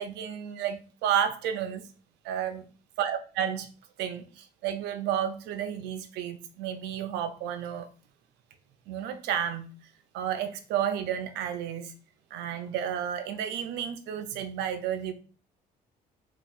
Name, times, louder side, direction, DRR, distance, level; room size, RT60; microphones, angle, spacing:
voice 1, 0.0-1.8 2.2-2.6 3.0-3.7 4.0-7.9 8.9-9.7 10.1-11.9 12.3-15.1, right 9 dB, 90° right, 9 dB, 0.6 m, -31 dB
3.0 x 2.3 x 4.2 m, 0.36 s
cardioid pair, 110°, 17 cm